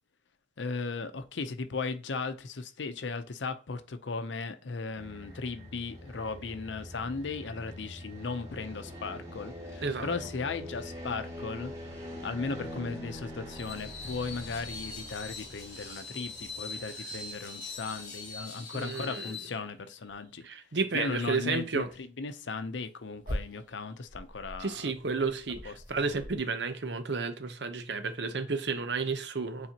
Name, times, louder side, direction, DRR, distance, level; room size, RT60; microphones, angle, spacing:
voice 1, 0.6-11.7 12.2-20.5 20.9-24.9 25.6-25.8, left 4 dB, 85° left, 0.6 m, -37 dB
sound 1, 4.9-18.4, left 1 dB, 20° right, 2.7 m, -44 dB
Screech, 13.5-19.5, left 3 dB, 45° left, 2.3 m, -42 dB
voice 2, 18.7-19.3 20.4-21.9 24.6-29.7, right 4 dB, 70° right, 0.7 m, -32 dB
sound 2, 20.0-20.5 21.3-21.4 21.8-22.0 22.6-26.4, equal, 50° right, 1.8 m, -42 dB
8.7 x 4.0 x 2.9 m
head